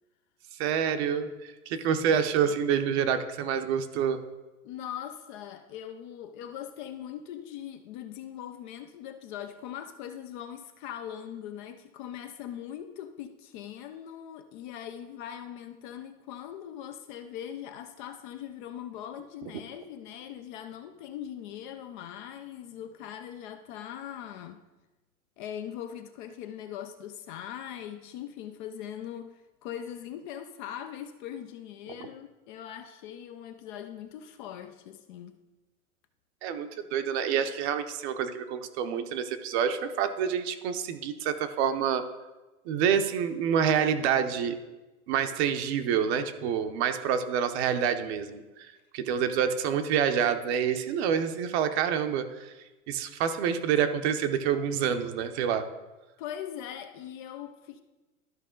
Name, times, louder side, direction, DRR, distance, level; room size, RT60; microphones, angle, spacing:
voice 1, 0.5-4.2 36.4-42.0 42.7-44.6 45.1-52.5 52.9-55.6, right 8 dB, 45° right, 0.8 m, -27 dB
voice 2, 4.6-24.6 25.4-35.4 56.2-57.8, left 10 dB, 35° left, 0.4 m, -41 dB
12.5 x 5.4 x 3.8 m
hypercardioid pair, 135°, 44 cm